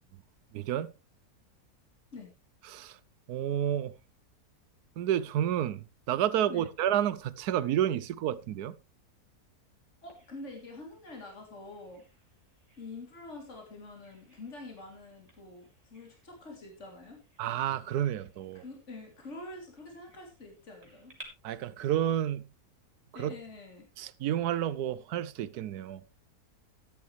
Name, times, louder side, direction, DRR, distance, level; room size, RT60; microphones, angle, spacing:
voice 1, 0.5-0.9 2.6-3.0 3.3-3.9 5.0-8.8 17.4-18.6 21.4-22.5 23.1-23.4 24.0-26.0, right 11 dB, 80° right, 1.2 m, -30 dB
voice 2, 10.0-12.0 12.8-17.2 18.5-21.1 23.1-23.9, left 2 dB, 45° left, 3.3 m, -46 dB
Bird vocalization bird call bird song, 10.1-21.2, right 2 dB, 25° right, 3.2 m, -60 dB
13.5 x 10.5 x 3.2 m
omnidirectional pair, 1.7 m